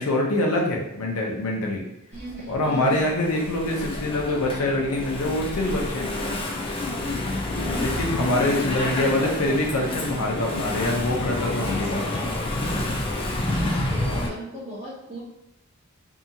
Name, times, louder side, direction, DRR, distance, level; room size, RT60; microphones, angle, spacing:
voice 1, 0.0-1.8 2.5-6.1 7.8-12.2, left 1 dB, 85° left, -1 dB, 0.6 m, -25 dB
Engine / Mechanisms, 2.1-14.3, left 1 dB, 25° left, 0.3 m, -29 dB
voice 2, 2.1-3.1 7.5-8.0 8.8-9.6 13.9-15.2, right 1 dB, 30° right, -8 dB, 0.7 m, -37 dB
2.7 x 2.3 x 2.7 m, 0.84 s
head